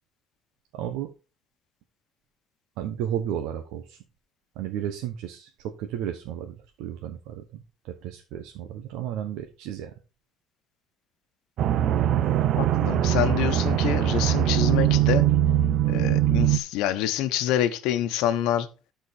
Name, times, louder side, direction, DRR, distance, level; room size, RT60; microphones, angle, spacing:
voice 1, 0.7-1.1 2.8-4.0 4.6-5.5 5.8-9.9, right 10 dB, 80° right, 1.1 m, -33 dB
sound 1, 11.6-16.6, right 12 dB, 50° right, 0.6 m, -22 dB
voice 2, 12.6-15.2 15.9-18.7, left 11 dB, 80° left, 1.1 m, -26 dB
12.5 x 4.6 x 4.4 m
cardioid pair, 160°, 0 cm